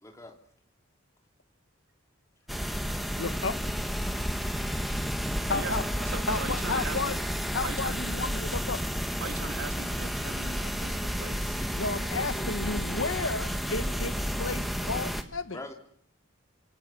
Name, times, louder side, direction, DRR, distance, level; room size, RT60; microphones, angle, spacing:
voice 1, 0.0-0.4 11.6-11.8 12.3-12.5 12.7-13.1 15.5-15.7, left 1 dB, 15° left, 3.2 m, -42 dB
sound 1, 2.5-15.2, equal, ahead, 1.6 m, -31 dB
voice 2, 3.2-3.6 5.5-5.8 6.3-7.2 7.5-8.8 11.8-14.1 14.4-15.6, left 3 dB, 75° left, 1.4 m, -32 dB
voice 3, 5.5-7.1 7.6-8.0 9.2-11.6, right 4 dB, 90° right, 2.7 m, -40 dB
26.0 x 25.5 x 7.5 m
head